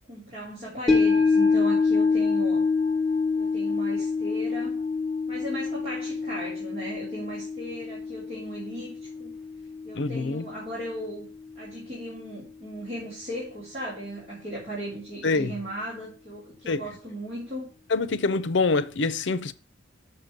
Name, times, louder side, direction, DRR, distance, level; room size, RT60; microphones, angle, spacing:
voice 1, 0.1-2.7 3.4-4.8 5.3-9.3 9.8-11.3 11.5-17.7, right 1 dB, 35° right, 3.4 m, -37 dB
sound 1, 0.9-11.3 11.6-11.7, left 4 dB, ahead, 2.1 m, -26 dB
voice 2, 10.0-10.5 15.2-15.6 16.7-16.8 17.9-19.5, left 3 dB, 75° left, 0.6 m, -25 dB
6.8 x 6.5 x 6.5 m
head